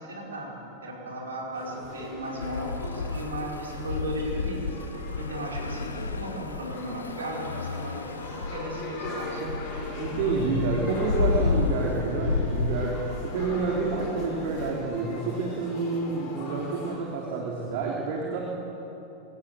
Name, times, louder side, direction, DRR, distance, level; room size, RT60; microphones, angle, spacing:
voice 1, 0.0-4.8 5.2-9.4, equal, 70° right, -2 dB, 5.3 m, -36 dB
sound 1, 1.5-16.9, left 2 dB, 40° left, 6.3 m, -39 dB
sound 2, 2.4-14.7, left 4 dB, 75° left, 0.9 m, -32 dB
voice 2, 10.0-18.4, right 4 dB, 50° right, -2 dB, 3.3 m, -29 dB
23.5 x 16.5 x 7.9 m, 3.0 s
figure-of-eight pair, 90°, 0 cm